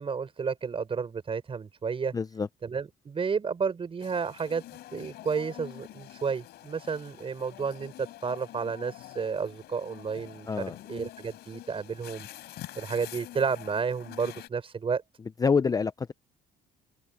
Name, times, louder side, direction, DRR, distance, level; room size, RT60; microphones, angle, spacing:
voice 1, 0.0-2.1 2.6-4.6 4.9-12.3 12.7-15.0, right 5 dB, 35° right, 6.0 m, -31 dB
voice 2, 2.1-2.5 10.5-10.8 15.4-16.1, left 5 dB, 20° left, 0.7 m, -26 dB
sound 1, 4.0-14.5, left 15 dB, 75° left, 4.6 m, -46 dB
open air
cardioid pair, 110°, 17 cm